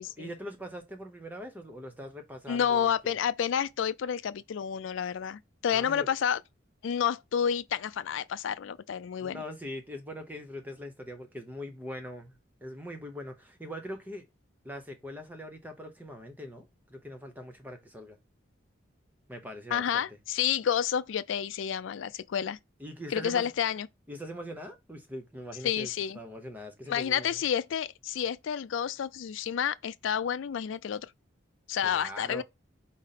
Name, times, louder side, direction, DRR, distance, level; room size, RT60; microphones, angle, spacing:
voice 1, 0.0-3.1 5.7-6.1 9.2-14.2 14.6-18.2 19.3-20.0 22.8-23.5 24.1-27.4 31.8-32.4, equal, 10° right, 0.7 m, -42 dB
voice 2, 2.5-6.4 6.8-9.4 19.7-22.6 23.1-23.9 25.6-26.2 26.9-31.1 31.7-32.4, left 8 dB, 75° left, 0.3 m, -30 dB
5.2 x 2.0 x 4.1 m
head